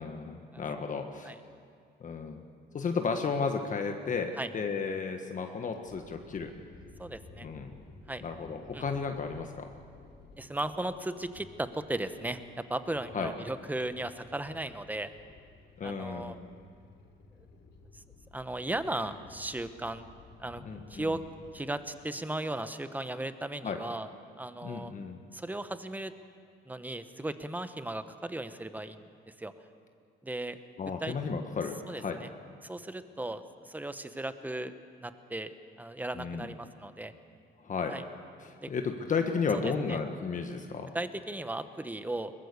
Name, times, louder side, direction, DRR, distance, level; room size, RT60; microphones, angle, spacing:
voice 1, 0.0-1.3 2.0-2.4 2.7-6.5 7.4-7.7 8.2-9.7 13.1-13.3 15.8-16.4 20.6-21.2 23.6-23.8 24.6-25.3 30.8-32.2 36.1-36.5 37.6-38.0 38.4-40.9, left 5 dB, 45° left, 5 dB, 1.4 m, -33 dB
sound 1, 5.8-21.6, left 3 dB, 85° left, 5.7 m, -55 dB
voice 2, 7.0-7.5 8.1-8.2 8.7-8.8 10.4-15.1 15.8-16.4 17.9-18.0 18.3-20.1 20.4-20.6 20.9-21.2 21.5-24.1 24.4-24.9 25.3-26.1 26.7-29.1 29.4-29.5 30.2-30.6 31.0-31.1 31.9-32.3 32.6-34.7 35.0-35.5 35.8-37.1 37.9-38.0 38.6-38.7 39.6-40.0 40.9-42.3, right 1 dB, 10° right, 10 dB, 1.1 m, -36 dB
22.5 x 20.5 x 6.9 m, 2.3 s
cardioid pair, 100°, 18 cm